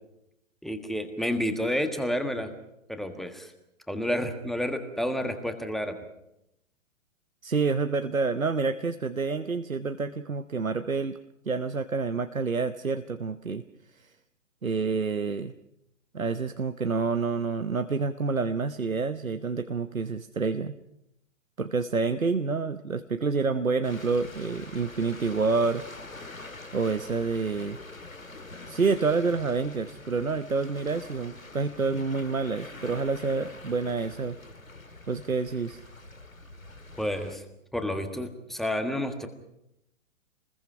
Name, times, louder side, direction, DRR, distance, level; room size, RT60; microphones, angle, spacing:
voice 1, 0.6-2.5 2.9-3.5 3.9-5.9 37.0-37.4 37.7-39.3, equal, ahead, 7 dB, 1.5 m, -30 dB
voice 2, 7.4-11.2 11.5-13.6 14.6-15.5 16.1-20.8 21.6-25.8 26.7-27.8 28.7-34.4 35.1-35.8, right 4 dB, 90° right, 10 dB, 1.0 m, -28 dB
sound 1, 23.8-37.4, left 2 dB, 85° left, 2.0 m, -45 dB
27.5 x 21.0 x 5.7 m, 0.83 s
figure-of-eight pair, 120°, 40 cm